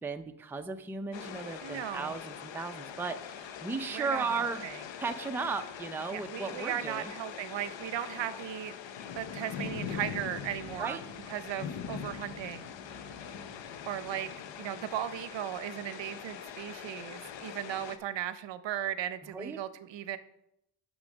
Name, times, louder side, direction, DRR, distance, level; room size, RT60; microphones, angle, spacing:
voice 1, 0.0-4.7 5.0-7.1 10.8-11.0 19.3-19.6, right 4 dB, 5° right, 6 dB, 0.4 m, -35 dB
sound 1, 1.1-18.0, left 7 dB, 70° left, 0.8 m, -42 dB
voice 2, 1.6-2.1 3.9-4.8 6.1-8.7 9.1-11.0 11.3-12.7 13.8-14.3 14.6-20.2, right 11 dB, 70° right, 13 dB, 0.7 m, -37 dB
6.6 x 6.2 x 6.3 m, 0.80 s
cardioid pair, 115°, 46 cm